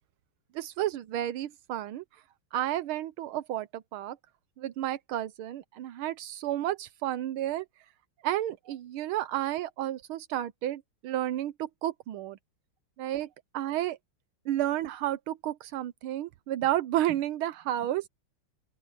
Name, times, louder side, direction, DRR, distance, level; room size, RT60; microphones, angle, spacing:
voice 1, 0.5-2.0 2.5-4.2 4.6-7.6 8.2-12.4 13.0-13.3 13.5-14.0 14.5-18.1, right 13 dB, 80° right, 1.6 m, -31 dB
open air
omnidirectional pair, 2.3 m